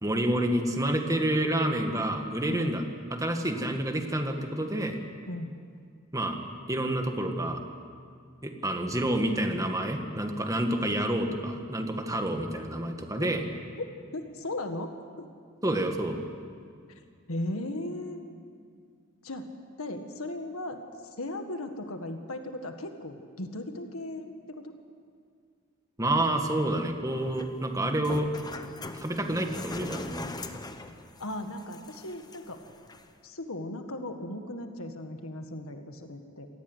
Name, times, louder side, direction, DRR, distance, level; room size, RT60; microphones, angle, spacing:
voice 1, 0.0-2.8 3.1-5.0 6.1-6.4 6.7-7.6 8.4-13.4 15.6-16.2 26.0-28.3 28.9-30.3, right 1 dB, 15° right, 4 dB, 1.9 m, -28 dB
voice 2, 13.8-14.9 15.2-15.3 16.9-17.0 17.3-18.2 19.2-19.5 19.8-20.9 21.2-24.7 31.2-32.6 33.2-36.5, left 1 dB, 75° left, 6 dB, 1.7 m, -37 dB
sound 1, 27.1-33.1, left 2 dB, 20° left, 1.1 m, -42 dB
27.0 x 18.5 x 8.1 m, 2.1 s
head